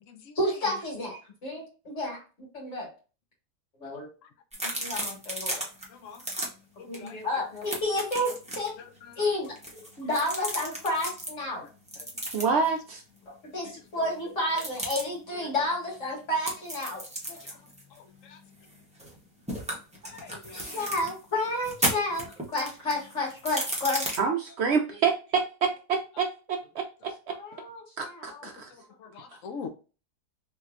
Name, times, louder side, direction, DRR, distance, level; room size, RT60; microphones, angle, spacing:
voice 1, 0.4-2.9 3.8-4.1 4.6-5.6 6.9-8.7 9.2-9.5 9.7-11.6 13.3-17.0 17.3-17.4 20.5-24.0 27.3-28.5, left 1 dB, 50° left, -3 dB, 2.1 m, -31 dB
sound 1, 4.5-5.8 6.1-6.5 6.9-7.1 7.4-8.7 9.4-11.3 11.9-12.7 14.5-15.0 16.4-19.2 19.5-21.1 21.6-24.2, right 1 dB, 5° right, 0.5 m, -34 dB
voice 2, 6.8-7.2 12.4-12.5 17.4-17.6 18.2-18.4 20.1-20.8 29.0-29.7, left 5 dB, 65° left, 7 dB, 0.8 m, -43 dB
voice 3, 12.3-13.0 24.2-27.3 28.0-28.7, right 5 dB, 75° right, 3 dB, 0.6 m, -28 dB
3.3 x 3.0 x 2.4 m, 0.34 s
omnidirectional pair, 1.7 m